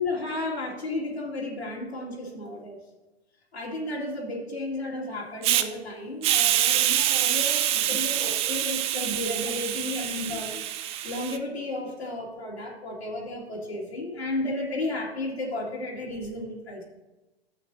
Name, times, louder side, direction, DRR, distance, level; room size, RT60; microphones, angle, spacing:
voice 1, 0.0-2.8 3.5-10.7 11.0-16.8, left 2 dB, 80° left, -5 dB, 2.6 m, -33 dB
Hiss, 5.4-5.6 6.2-11.4, right 12 dB, 20° right, 0.4 m, -25 dB
13.0 x 8.3 x 2.7 m, 1.1 s
figure-of-eight pair, 105°, 31 cm